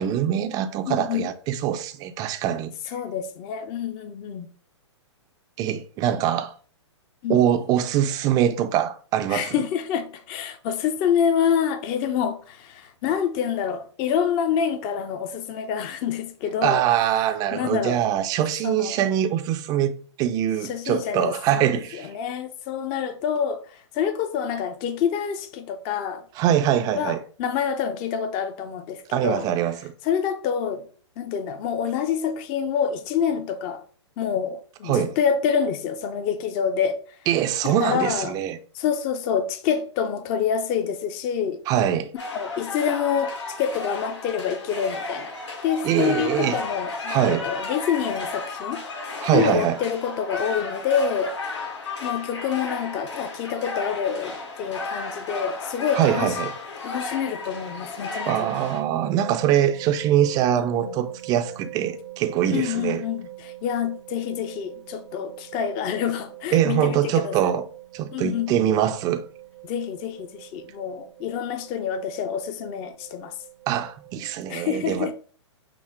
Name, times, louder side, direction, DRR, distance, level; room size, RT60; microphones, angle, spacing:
voice 1, 0.0-2.7 5.6-6.5 7.3-9.5 16.6-22.1 26.4-27.2 29.1-29.9 34.9-35.1 37.3-38.6 41.7-42.1 45.8-46.6 47.1-47.4 49.2-49.8 56.0-56.5 58.3-63.0 66.5-67.6 67.9-69.2 73.7-75.1, right 10 dB, 25° right, 0.4 m, -23 dB
voice 2, 0.9-1.3 2.9-4.5 7.2-7.4 9.3-16.8 17.5-18.0 18.6-19.1 20.6-26.2 27.0-29.5 30.0-30.9 31.2-33.8 34.2-37.0 37.6-38.4 38.7-41.6 42.3-45.4 45.6-48.8 49.3-51.3 52.0-56.3 56.8-58.5 60.5-60.9 62.5-67.6 68.1-68.6 69.6-73.3 74.5-75.1, left 7 dB, 30° left, 0.6 m, -27 dB
sound 1, 42.2-58.8, left 3 dB, 75° left, 2.1 m, -34 dB
sound 2, 58.3-74.4, right 17 dB, 75° right, 0.9 m, -43 dB
5.8 x 2.0 x 4.5 m
hypercardioid pair, 125°, 15 cm